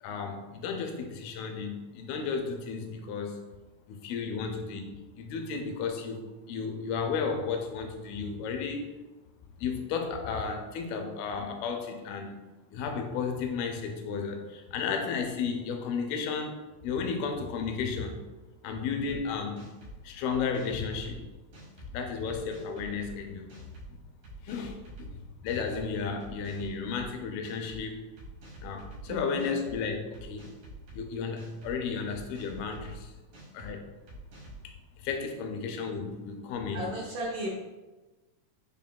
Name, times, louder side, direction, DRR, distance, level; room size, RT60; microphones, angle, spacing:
voice 1, 0.0-3.4 3.9-8.9 9.6-12.3 12.7-16.6 16.8-18.2 18.6-19.7 20.0-21.2 21.9-23.5 24.4-28.0 28.6-30.5 30.9-33.1 33.5-33.9 34.6-36.9, left 5 dB, 90° left, 4 dB, 2.5 m, -33 dB
sound 1, 19.1-19.2 19.6-20.0 20.3-21.2 21.5-21.9 22.3-23.1 23.5-23.9 24.2-25.1 25.5-25.8 26.2-27.1 27.4-27.8 28.2-29.0 29.4-29.8 30.1-31.0 31.4-31.7 32.1-33.0 33.3-33.7 34.1-34.6, equal, 50° right, 2.0 m, -47 dB
voice 2, 29.1-29.5 36.7-37.5, equal, 75° right, -5 dB, 2.1 m, -35 dB
6.3 x 3.6 x 2.2 m, 1.1 s
omnidirectional pair, 4.3 m